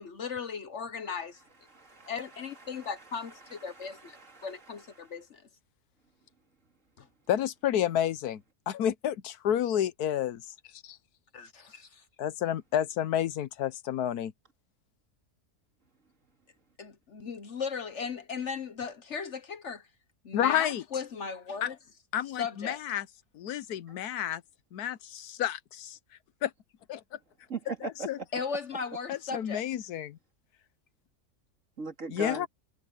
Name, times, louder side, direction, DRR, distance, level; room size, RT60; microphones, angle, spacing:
voice 1, 0.0-1.4 2.1-4.2 4.4-5.4 7.0-7.1 11.3-12.0 16.8-19.9 20.2-21.8 22.4-22.8 28.3-29.6, left 6 dB, 55° left, 1.2 m, -37 dB
voice 2, 1.7-4.7 5.0-5.1 23.9-24.0 27.5-28.1 31.8-32.5, right 3 dB, 55° right, 3.1 m, -41 dB
voice 3, 7.3-10.4 10.7-11.0 12.2-14.3 20.3-20.8 21.6-21.7 22.1-23.1 23.3-24.4 24.7-26.0 26.4-26.5 26.9-27.2 28.1-28.2 29.1-30.2 32.1-32.5, left 10 dB, 85° left, 1.3 m, -30 dB
omnidirectional pair, 1.6 m